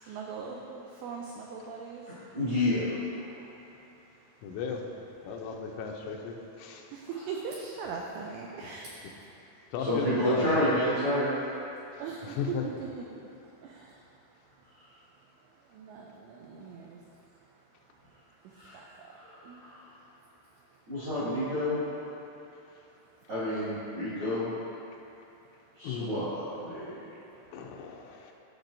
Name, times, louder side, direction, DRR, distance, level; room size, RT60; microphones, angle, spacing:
voice 1, 0.1-2.0 6.9-7.0 7.3-8.9 12.0-13.0 13.6-13.7 15.8-17.0 18.7-18.8 19.5-19.6, right 5 dB, 90° right, -1 dB, 2.4 m, -39 dB
voice 2, 2.3-3.3 9.8-11.3 18.5-18.8 19.1-19.8 20.9-21.8 23.3-24.5 25.8-27.1, left 1 dB, 50° right, -12 dB, 1.7 m, -30 dB
voice 3, 4.4-4.8 5.2-6.9 9.7-10.7 12.2-12.6 25.8-26.1 27.5-28.3, left 6 dB, 85° left, 1 dB, 3.2 m, -35 dB
13.5 x 6.0 x 2.6 m, 2.8 s
omnidirectional pair, 5.6 m